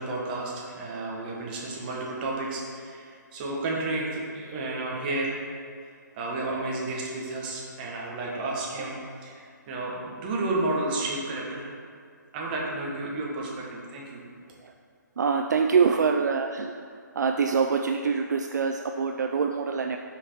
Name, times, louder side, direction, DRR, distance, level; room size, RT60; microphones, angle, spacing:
voice 1, 0.0-5.4 6.1-11.7 12.3-14.2, right 2 dB, 25° right, -3 dB, 1.2 m, -32 dB
voice 2, 15.2-16.7 17.2-20.0, right 5 dB, 60° right, 4 dB, 0.4 m, -24 dB
5.7 x 4.5 x 4.3 m, 2.2 s
figure-of-eight pair, 145°, 10 cm